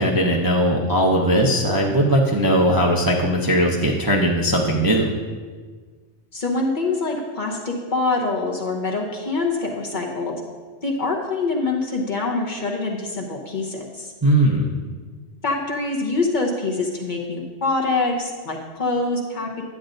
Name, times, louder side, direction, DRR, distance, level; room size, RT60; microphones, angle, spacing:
voice 1, 0.0-5.1 14.2-14.7, right 1 dB, 25° right, -2 dB, 0.5 m, -19 dB
voice 2, 6.3-10.4 10.8-14.1 15.4-19.6, left 3 dB, 40° left, 0 dB, 0.9 m, -25 dB
10.5 x 8.6 x 2.6 m, 1.5 s
omnidirectional pair, 1.3 m